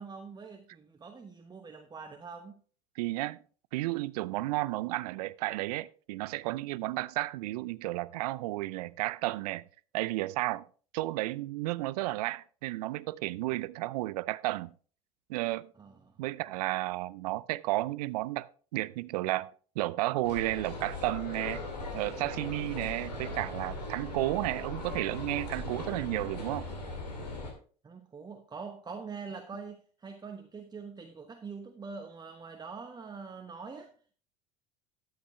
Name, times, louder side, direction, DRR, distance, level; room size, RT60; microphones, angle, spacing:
voice 1, 0.0-2.6 15.8-16.2 27.8-33.9, right 5 dB, 20° right, 1.0 m, -44 dB
voice 2, 3.0-3.4 3.7-9.6 9.9-10.6 10.9-14.7 15.3-15.7 16.2-19.5 19.8-21.6 21.9-26.7, right 18 dB, 70° right, 0.5 m, -32 dB
sound 1, 20.2-27.5, left 2 dB, 85° left, 2.5 m, -39 dB
12.0 x 7.8 x 3.1 m
hypercardioid pair, 75°, 21 cm